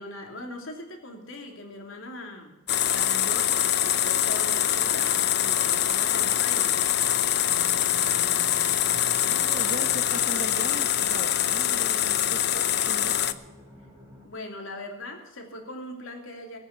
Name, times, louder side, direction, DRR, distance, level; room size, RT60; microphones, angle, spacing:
voice 1, 0.0-2.5 2.9-6.8 14.2-16.6, left 2 dB, 70° left, 2 dB, 2.8 m, -40 dB
sound 1, 2.7-13.3, left 11 dB, 50° left, 0.6 m, -24 dB
sound 2, 4.9-14.3, equal, 10° right, 3.1 m, -49 dB
voice 2, 9.2-13.4, right 2 dB, 40° right, 8 dB, 1.1 m, -39 dB
18.0 x 8.9 x 7.2 m, 0.96 s
head